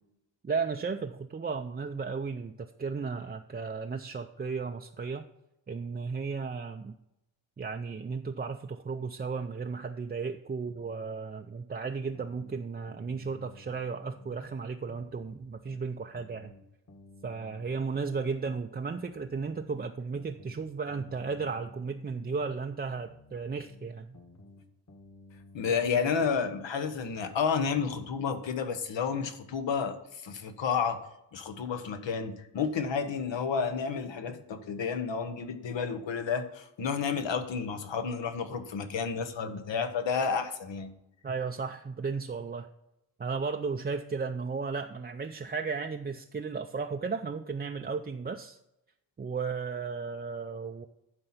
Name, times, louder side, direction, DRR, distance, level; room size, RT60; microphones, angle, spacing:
voice 1, 0.4-5.3 5.7-7.0 7.6-16.5 17.2-24.1 41.2-42.7 43.2-48.6 49.2-50.9, right 5 dB, 25° right, 5 dB, 0.4 m, -34 dB
sound 1, 12.1-14.6 14.9-18.6 18.9-22.6 22.9-26.6 26.9-28.0, left 2 dB, 40° left, 1.7 m, -52 dB
voice 2, 25.5-31.0 31.3-40.9, left 6 dB, 80° left, 8 dB, 1.1 m, -31 dB
11.5 x 4.5 x 5.7 m, 0.87 s
wide cardioid pair, 95°, 44 cm